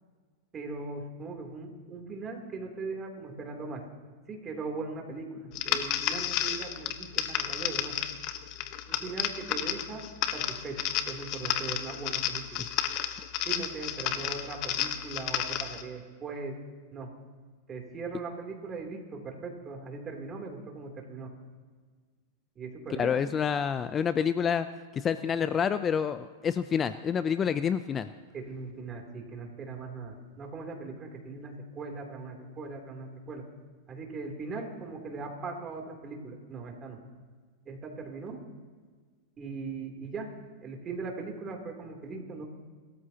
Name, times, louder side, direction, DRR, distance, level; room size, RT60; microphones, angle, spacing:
voice 1, 0.5-3.8 4.3-8.0 8.9-12.6 13.4-16.6 16.9-17.1 17.7-21.3 22.6-23.2 28.3-33.4 33.9-37.0 37.6-38.4 39.4-42.4, right 3 dB, 25° right, 2 dB, 3.1 m, -39 dB
sound 1, 5.5-15.8, left 11 dB, 50° left, 1.1 m, -32 dB
voice 2, 23.0-24.7 24.9-28.1, left 7 dB, 25° left, 12 dB, 0.5 m, -28 dB
29.5 x 13.5 x 2.9 m, 1.5 s
hypercardioid pair, 120°, 0 cm